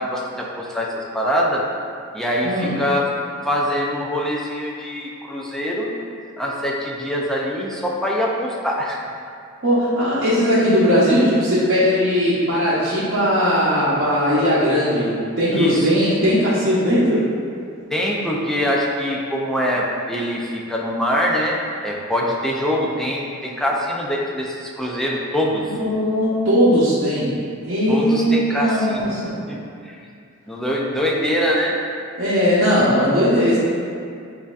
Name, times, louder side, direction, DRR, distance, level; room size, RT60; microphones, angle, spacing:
voice 1, 0.0-1.6 2.1-3.1 3.4-5.9 6.4-9.0 15.5-15.9 17.9-21.6 21.8-25.6 27.9-29.1 29.5-30.0 30.5-31.8, equal, ahead, -3 dB, 0.4 m, -23 dB
voice 2, 2.4-2.7 9.6-17.3 25.8-27.4 27.6-29.3 32.2-33.6, equal, 55° right, -11 dB, 0.8 m, -18 dB
7.2 x 2.7 x 2.4 m, 2.4 s
head